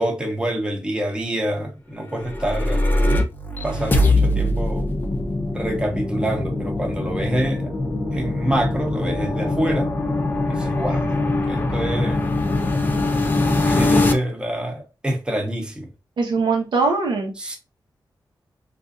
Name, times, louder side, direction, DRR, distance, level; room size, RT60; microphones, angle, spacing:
voice 1, 0.0-2.8 3.6-4.9 5.5-7.7 8.1-9.9 10.5-12.2 13.6-15.9 17.4-17.6, right 1 dB, 10° right, 0.9 m, -26 dB
sound 1, 2.1-14.1, left 2 dB, 25° left, 0.6 m, -22 dB
voice 2, 16.2-17.5, right 4 dB, 85° right, 1.0 m, -22 dB
3.7 x 2.6 x 2.4 m
wide cardioid pair, 115°, 8 cm